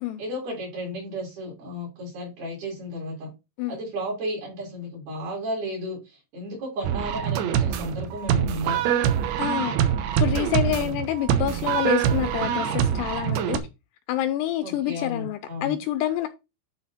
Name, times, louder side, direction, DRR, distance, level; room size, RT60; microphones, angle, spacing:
voice 1, 0.2-3.3 3.7-8.8 14.6-15.8, equal, 60° right, 5.3 m, -33 dB
sound 1, 6.8-13.6, right 9 dB, 75° right, 2.5 m, -24 dB
voice 2, 9.4-9.9 10.2-13.6 14.1-16.3, left 12 dB, 80° left, 2.5 m, -27 dB
12.0 x 4.2 x 4.2 m
omnidirectional pair, 5.2 m